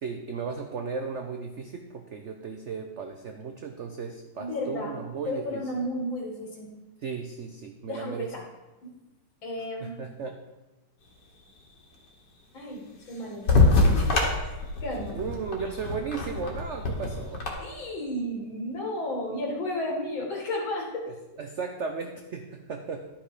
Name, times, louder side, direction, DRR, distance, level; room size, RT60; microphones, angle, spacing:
voice 1, 0.0-5.6 7.0-8.3 9.8-10.4 15.1-17.4 21.1-23.1, right 5 dB, 85° right, 5 dB, 0.6 m, -35 dB
voice 2, 4.4-4.9 5.3-6.7 7.8-8.5 8.8-8.9 9.4-10.0 12.5-13.7 13.9-15.2 17.6-21.1, left 1 dB, 80° left, 0 dB, 2.7 m, -33 dB
sound 1, 13.5-17.5, left 3 dB, 60° left, 2.1 m, -24 dB
11.5 x 5.9 x 5.0 m, 1.1 s
omnidirectional pair, 2.1 m